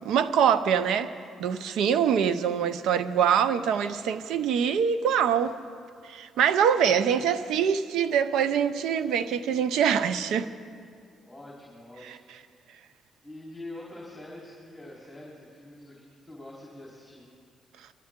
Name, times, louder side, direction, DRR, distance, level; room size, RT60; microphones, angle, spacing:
voice 1, 0.0-1.1 1.4-5.5 6.0-10.5 12.1-12.2, right 8 dB, 85° right, 0.6 m, -24 dB
voice 2, 11.2-12.6 13.2-17.3, left 1 dB, 5° left, 3.9 m, -45 dB
23.0 x 13.5 x 3.7 m
cardioid pair, 90°, 0 cm